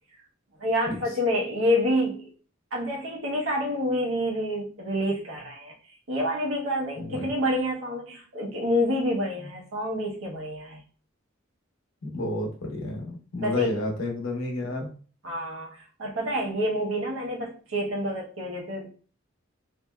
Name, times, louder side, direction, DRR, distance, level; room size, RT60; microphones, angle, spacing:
voice 1, 0.6-2.3 2.7-5.7 6.1-10.8 13.4-13.7 15.2-18.9, equal, 85° right, -2 dB, 0.9 m, -28 dB
voice 2, 7.0-7.3 9.4-9.5 12.0-14.9, left 1 dB, 85° left, 1 dB, 0.8 m, -31 dB
3.0 x 2.6 x 2.2 m, 0.40 s
head